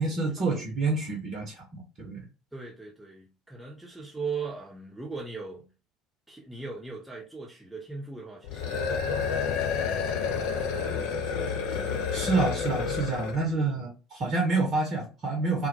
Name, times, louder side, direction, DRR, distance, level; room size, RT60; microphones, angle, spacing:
voice 1, 0.0-2.3 12.1-15.7, right 3 dB, 40° right, 0.7 m, -28 dB
voice 2, 2.5-5.7 6.3-8.8 9.2-10.5 10.7-12.0 13.5-13.8, right 4 dB, 5° right, 0.7 m, -40 dB
sound 1, 8.4-13.5, left 6 dB, 60° left, 0.4 m, -29 dB
2.1 x 2.1 x 2.7 m
figure-of-eight pair, 60°, 0 cm